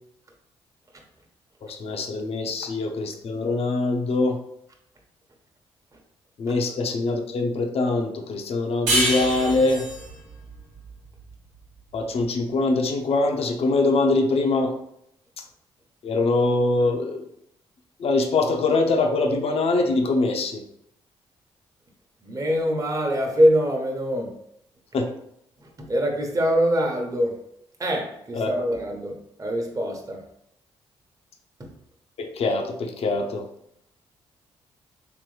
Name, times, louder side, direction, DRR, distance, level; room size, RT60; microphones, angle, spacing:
voice 1, 1.6-4.4 6.4-9.8 11.9-14.7 16.0-17.3 18.0-20.6 24.9-25.1 28.3-28.7 32.2-33.4, left 3 dB, 60° left, 4 dB, 0.7 m, -23 dB
sound 1, 8.9-12.0, right 1 dB, 85° right, 0.9 m, -27 dB
voice 2, 22.2-24.3 25.8-27.4 27.8-30.2 31.6-31.7, equal, 30° right, 0 dB, 1.0 m, -23 dB
3.4 x 3.0 x 3.2 m, 0.74 s
supercardioid pair, 50°, 12 cm